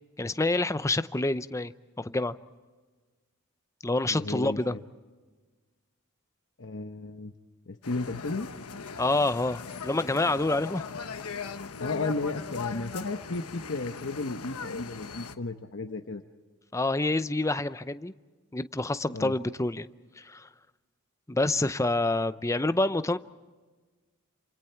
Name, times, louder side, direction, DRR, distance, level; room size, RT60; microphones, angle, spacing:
voice 1, 0.2-1.7 2.0-2.4 3.8-4.8 9.0-10.9 16.7-18.1 18.5-19.9 20.2-20.5 21.3-23.2, left 2 dB, 15° left, 0.6 m, -27 dB
voice 2, 4.1-4.8 6.6-7.3 7.7-8.5 11.8-16.2 19.1-19.3, left 3 dB, 55° left, 1.0 m, -34 dB
sound 1, 7.8-15.4, left 5 dB, 80° left, 1.1 m, -39 dB
28.0 x 27.0 x 4.5 m
head